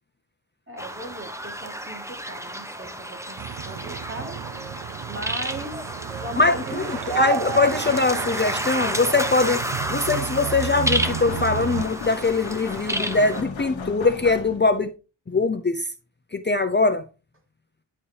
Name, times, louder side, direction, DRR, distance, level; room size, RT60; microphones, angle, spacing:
voice 1, 0.7-4.4 5.1-5.9 6.1-6.9, right 1 dB, 30° right, 2.2 m, -38 dB
sound 1, 0.8-13.4, right 1 dB, 5° right, 0.9 m, -31 dB
sound 2, 3.4-11.8, right 10 dB, 60° right, 0.5 m, -32 dB
voice 2, 6.4-14.9 15.3-15.9 16.3-17.0, left 3 dB, 25° left, 0.6 m, -22 dB
sound 3, 11.0-14.9, left 5 dB, 85° left, 1.3 m, -37 dB
11.0 x 4.3 x 3.3 m
cardioid pair, 65°, 45 cm